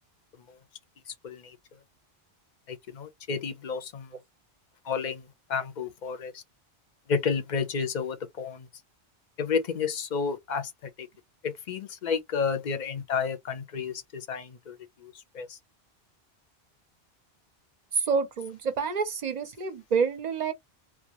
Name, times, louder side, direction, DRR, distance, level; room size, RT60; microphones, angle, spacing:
voice 1, 2.7-4.1 4.9-5.2 5.5-6.3 7.1-8.7 9.4-10.7 11.0-11.1 11.4-14.8 15.0-15.6, left 6 dB, 55° left, 0.6 m, -31 dB
voice 2, 17.9-20.5, right 5 dB, 50° right, 0.6 m, -28 dB
2.3 x 2.1 x 2.8 m
omnidirectional pair, 1.1 m